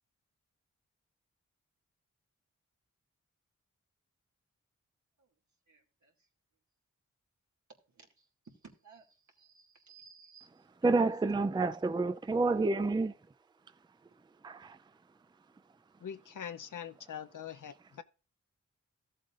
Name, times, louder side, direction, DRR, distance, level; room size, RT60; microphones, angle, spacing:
voice 1, 5.7-6.3 7.9-11.1, right 5 dB, 70° right, 2.4 m, -59 dB
voice 2, 10.8-13.1 14.4-14.8, right 3 dB, 15° right, 0.4 m, -29 dB
voice 3, 16.0-18.0, left 8 dB, 85° left, 0.7 m, -43 dB
14.5 x 7.7 x 2.5 m
cardioid pair, 50°, 30 cm